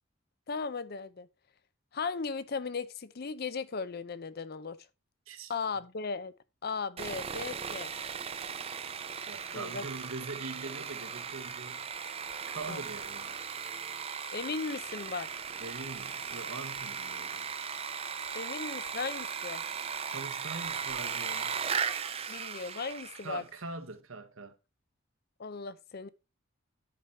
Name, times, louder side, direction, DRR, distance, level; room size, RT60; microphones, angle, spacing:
voice 1, 0.5-1.3 1.9-4.8 5.5-6.3 6.6-7.9 9.5-9.8 12.7-12.8 14.3-15.3 18.3-19.6 22.3-23.4 25.4-26.1, left 4 dB, 50° left, 0.6 m, -37 dB
Sawing, 7.0-23.4, right 6 dB, 30° right, 0.5 m, -37 dB
voice 2, 9.3-11.9 12.5-13.3 15.6-17.5 20.1-21.5 23.2-24.5, right 3 dB, 80° right, 1.1 m, -43 dB
10.0 x 5.0 x 4.2 m
head